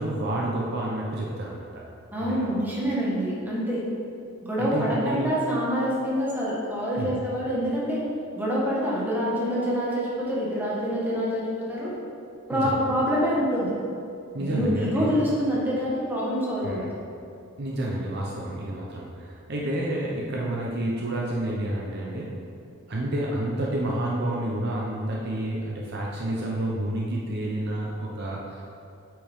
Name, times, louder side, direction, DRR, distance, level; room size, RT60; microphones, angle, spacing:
voice 1, 0.0-1.8 2.2-2.5 4.6-5.3 6.9-7.1 12.5-12.7 14.3-15.2 16.6-16.9 17.6-22.4 22.9-28.6, right 1 dB, 50° right, -3 dB, 0.8 m, -29 dB
voice 2, 2.1-3.8 4.4-8.0 8.3-11.9 12.5-13.7 14.5-16.9, equal, 10° right, -7 dB, 1.5 m, -26 dB
8.4 x 6.0 x 3.6 m, 2.5 s
head